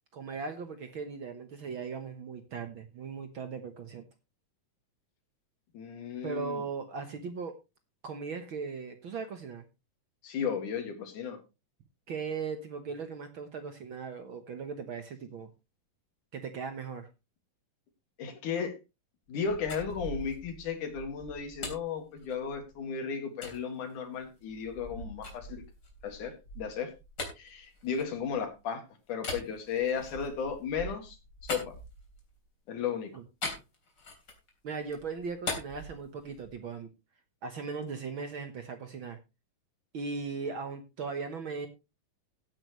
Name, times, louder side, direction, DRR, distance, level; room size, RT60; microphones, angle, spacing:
voice 1, 0.1-4.0 6.2-7.6 8.0-9.6 12.1-15.5 16.3-17.1 33.1-33.2 34.6-36.9 37.4-39.2 39.9-41.7, right 5 dB, 55° right, 8 dB, 1.5 m, -38 dB
voice 2, 5.7-6.6 10.2-11.4 18.2-18.7 19.3-25.6 26.0-26.9 27.4-28.8 29.1-31.2 31.4-31.7 32.7-33.1, left 6 dB, 85° left, 6 dB, 3.6 m, -34 dB
sound 1, 19.3-22.8 23.4-23.6 24.2-28.6 29.2-32.4 33.4-34.5 34.8-36.6, left 2 dB, 35° left, 3.9 m, -42 dB
16.0 x 9.2 x 3.2 m, 0.27 s
omnidirectional pair, 3.5 m